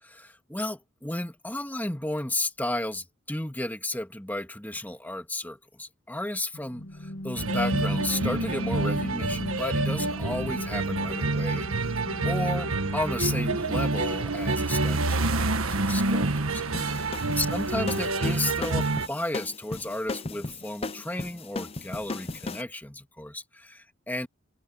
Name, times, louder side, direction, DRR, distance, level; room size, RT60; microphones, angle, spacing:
voice 1, 0.0-16.3 16.5-17.0 17.3-24.3, left 1 dB, 10° left, 2.2 m, -33 dB
sound 1, 6.5-14.3, equal, 65° left, 1.8 m, -36 dB
sound 2, 7.4-19.1, right 2 dB, 80° right, 1.5 m, -27 dB
sound 3, 16.7-22.6, left 3 dB, 25° left, 0.7 m, -36 dB
open air
head